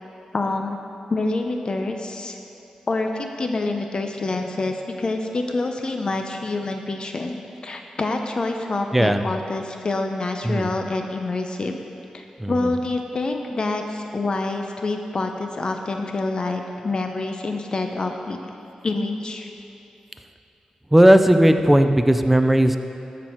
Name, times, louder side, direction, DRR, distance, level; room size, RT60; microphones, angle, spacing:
voice 1, 0.3-0.8 1.1-2.4 2.9-7.4 7.6-11.7 12.1-18.4 18.8-19.5, left 2 dB, 45° left, 4 dB, 0.6 m, -26 dB
voice 2, 8.9-9.3 10.4-10.8 12.4-12.8 20.9-22.8, right 1 dB, 5° right, 8 dB, 0.5 m, -16 dB
13.5 x 6.1 x 4.5 m, 2.7 s
cardioid pair, 85°, 2 cm